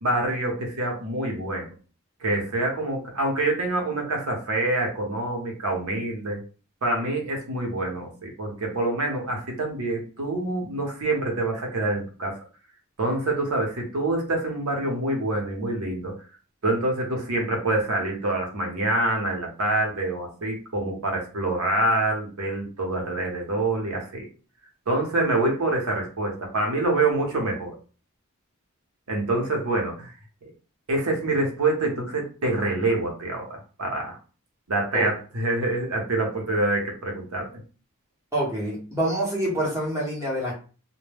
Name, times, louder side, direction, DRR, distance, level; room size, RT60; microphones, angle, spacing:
voice 1, 0.0-1.7 2.2-6.4 6.8-12.4 13.0-16.1 16.6-24.2 24.9-27.7 29.1-30.1 30.9-34.2 34.7-37.6, right 2 dB, 90° right, 1 dB, 0.8 m, -26 dB
voice 2, 38.3-40.5, right 1 dB, 15° right, -3 dB, 0.9 m, -26 dB
2.2 x 2.1 x 3.3 m, 0.36 s
head